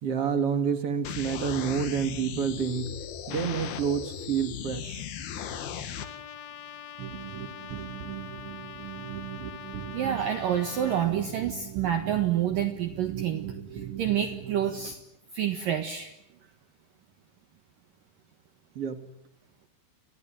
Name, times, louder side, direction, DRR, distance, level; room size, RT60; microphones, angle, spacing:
voice 1, 0.0-2.9 3.3-5.0 18.8-19.0, right 7 dB, 45° right, 9 dB, 2.3 m, -28 dB
sound 1, 1.0-6.0, left 8 dB, 65° left, 3.6 m, -37 dB
Trumpet, 6.0-11.1, left 9 dB, 80° left, 1.5 m, -44 dB
sound 2, 7.0-14.9, right 10 dB, 90° right, 4.4 m, -39 dB
voice 2, 9.9-13.4 13.7-15.0 15.3-16.1, right 10 dB, 60° right, 7 dB, 2.8 m, -28 dB
29.5 x 21.5 x 9.1 m, 0.80 s
omnidirectional pair, 5.0 m